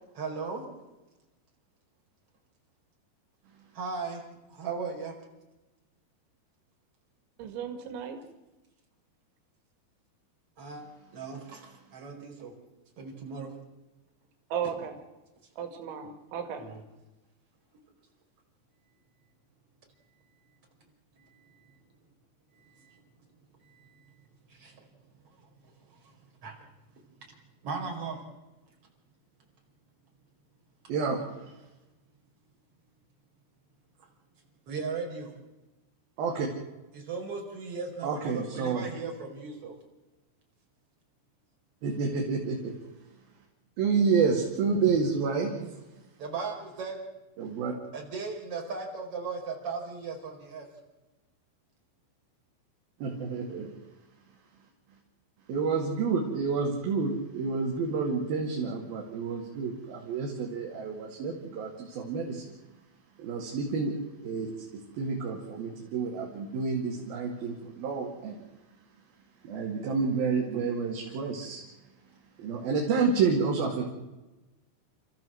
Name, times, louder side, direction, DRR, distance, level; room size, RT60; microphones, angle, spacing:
voice 1, 0.1-0.6 3.7-4.2 4.5-5.1 10.6-10.8 11.1-12.5 13.0-13.5 14.6-14.7 16.6-16.8 21.2-21.8 22.5-23.0 23.6-24.2 24.5-24.8 25.4-26.1 26.4-26.6 27.6-28.2 34.7-35.3 36.9-39.7 45.4-45.7 46.2-47.0 47.9-50.7, right 4 dB, 30° right, 5.4 m, -38 dB
voice 2, 7.4-8.2 14.5-14.9 15.6-16.7, right 8 dB, 85° right, 4.3 m, -35 dB
voice 3, 30.9-31.5 36.2-36.5 38.0-38.9 41.8-42.7 43.8-45.5 47.4-47.7 53.0-53.8 55.5-62.4 63.2-64.7 64.9-68.5 69.4-71.6 72.4-73.9, right 5 dB, 60° right, 3.8 m, -29 dB
29.0 x 14.5 x 7.7 m
omnidirectional pair, 5.2 m